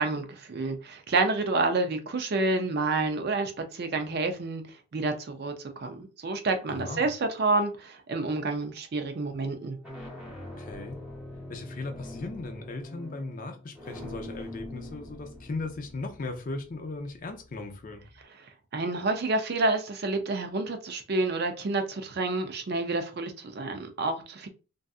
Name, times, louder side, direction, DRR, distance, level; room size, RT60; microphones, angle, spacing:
voice 1, 0.0-4.6 4.9-9.8 18.7-24.5, right 3 dB, 45° right, 0.4 m, -29 dB
voice 2, 6.7-7.1 10.6-11.0 11.5-18.0, left 3 dB, 40° left, 0.4 m, -37 dB
sound 1, 8.4-8.8 9.6-18.2, left 1 dB, 5° right, 0.9 m, -44 dB
2.6 x 2.3 x 2.3 m
head